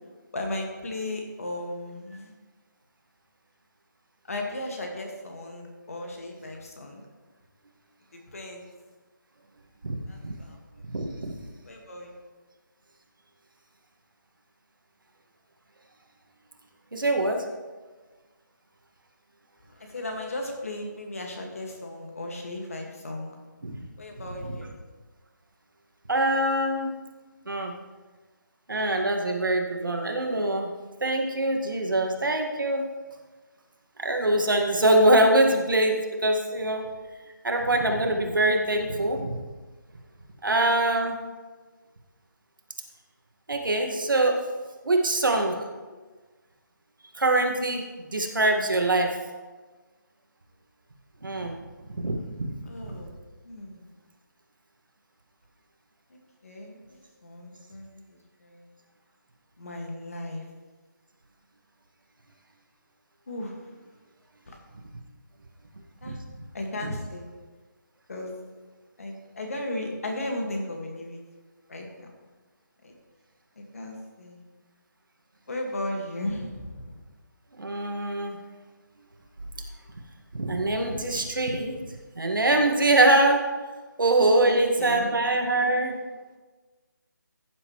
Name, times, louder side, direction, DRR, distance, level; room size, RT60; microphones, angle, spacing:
voice 1, 0.3-2.3 4.2-7.0 8.1-8.6 10.1-10.6 11.6-12.1 19.7-23.4 24.0-24.7 52.6-53.2 53.4-53.9 56.1-58.7 59.6-60.5 63.3-63.6 64.5-64.6 66.0-66.2 66.5-67.3 68.1-68.4 69.0-71.2 71.7-72.1 72.8-72.9 73.6-74.4 75.5-77.1 84.5-85.2, left 1 dB, 45° left, 2 dB, 1.9 m, -36 dB
voice 2, 10.9-11.4 16.9-17.4 23.6-23.8 26.1-26.9 27.5-27.7 28.7-30.7 31.0-32.8 34.0-36.9 37.4-39.4 40.4-41.1 43.5-44.4 44.8-45.6 47.1-49.2 51.2-51.6 51.9-52.6 66.0-66.2 77.6-78.4 80.3-81.8 82.2-83.5 84.0-86.0, right 1 dB, 80° right, 2 dB, 1.9 m, -23 dB
15.0 x 7.6 x 3.2 m, 1.3 s
hypercardioid pair, 175°, 11 cm